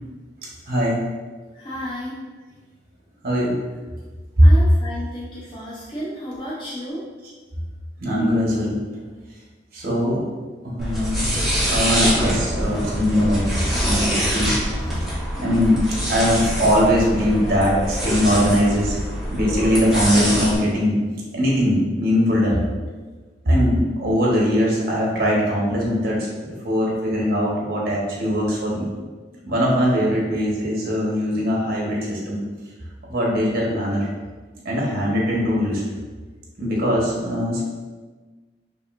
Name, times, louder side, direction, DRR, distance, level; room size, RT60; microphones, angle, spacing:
voice 1, 0.7-1.0 3.2-3.6 4.4-4.5 8.0-8.8 9.7-10.3 10.6-14.6 14.9-15.0 15.4-15.8 16.1-19.0 19.3-21.0 21.3-22.6 23.4-26.3 26.6-28.9 29.4-32.4 33.1-34.1 34.6-35.8 36.6-37.6, equal, 55° right, -4 dB, 1.0 m, -20 dB
voice 2, 1.5-2.2 4.4-7.0 15.4-15.7, equal, 25° left, -6 dB, 0.6 m, -33 dB
sound 1, 10.8-20.5, equal, ahead, 1.1 m, -24 dB
5.0 x 2.7 x 2.5 m, 1.4 s
head